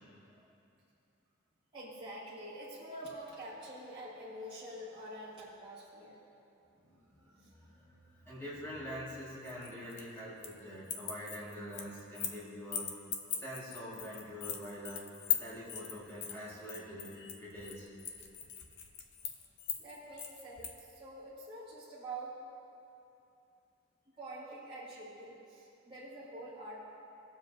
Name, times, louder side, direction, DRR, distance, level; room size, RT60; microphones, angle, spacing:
voice 1, 1.7-6.2 7.4-7.5 19.8-22.4 24.1-26.9, right 1 dB, 25° right, -10 dB, 1.6 m, -46 dB
voice 2, 6.8-12.8 13.3-15.0 15.4-17.9, equal, 10° left, -8 dB, 1.9 m, -45 dB
sound 1, 9.4-10.6 10.8-12.4 12.7-20.8, left 9 dB, 55° left, 0.7 m, -39 dB
18.0 x 7.1 x 2.7 m, 2.7 s
head